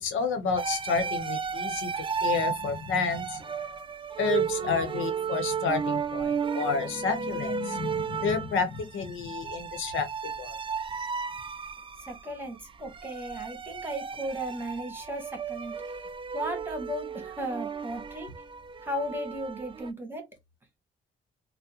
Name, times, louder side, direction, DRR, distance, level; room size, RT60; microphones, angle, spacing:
voice 1, 0.0-3.4 4.2-10.6, left 5 dB, 80° left, 0.9 m, -30 dB
sound 1, 0.6-19.9, right 6 dB, 25° right, 0.4 m, -34 dB
voice 2, 12.1-15.8 16.3-18.3 18.8-20.2, equal, 10° right, 1.4 m, -35 dB
3.5 x 2.1 x 2.8 m
cardioid pair, 90°, 20 cm